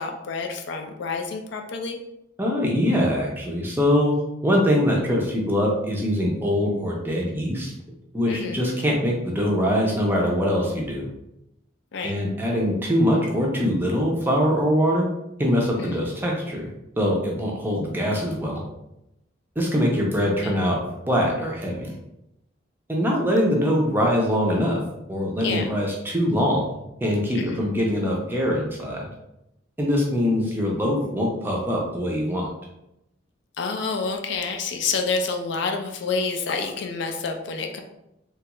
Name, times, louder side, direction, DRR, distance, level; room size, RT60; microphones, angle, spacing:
voice 1, 0.0-2.0 8.3-8.6 11.9-12.1 15.8-16.1 20.4-20.6 25.4-25.7 27.3-27.6 33.6-37.8, left 4 dB, 60° left, 4 dB, 0.3 m, -28 dB
voice 2, 2.4-7.7 8.1-11.1 12.0-15.1 15.4-16.7 17.0-18.6 19.6-20.8 21.1-21.9 22.9-24.8 25.1-26.7 27.0-29.1 29.8-32.5, equal, 10° right, -2 dB, 0.5 m, -23 dB
3.2 x 2.3 x 2.9 m, 0.87 s
head